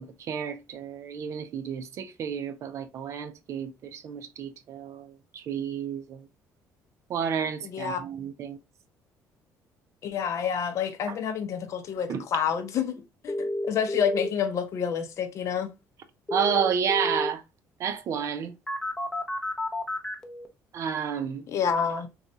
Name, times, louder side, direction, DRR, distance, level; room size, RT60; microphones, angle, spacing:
voice 1, 0.0-6.3 7.1-8.6 11.1-11.2 12.1-12.2 16.3-17.4 17.8-18.5 20.7-21.5, right 7 dB, 50° right, 0.5 m, -31 dB
voice 2, 7.6-8.0 10.0-15.7 21.5-22.1, left 7 dB, 50° left, 0.6 m, -28 dB
sound 1, 13.3-14.3 16.3-17.3 18.7-20.5, left 1 dB, 10° left, 0.6 m, -30 dB
4.2 x 2.3 x 2.6 m
cardioid pair, 125°, 6 cm